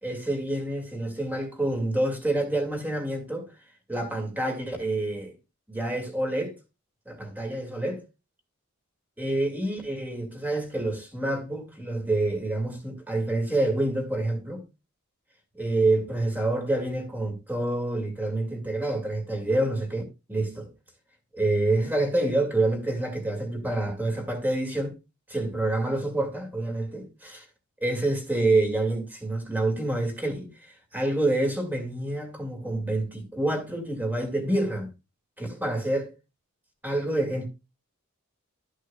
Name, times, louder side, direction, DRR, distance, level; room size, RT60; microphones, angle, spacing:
voice 1, 0.0-3.5 3.9-5.3 5.7-6.5 7.1-8.0 9.2-14.6 15.5-20.0 20.3-20.7 21.3-25.0 25.3-27.5 27.8-30.5 30.9-34.9 35.4-36.1 36.8-37.5, right 2 dB, 10° right, 2.3 m, -27 dB
13.5 x 6.4 x 2.4 m
head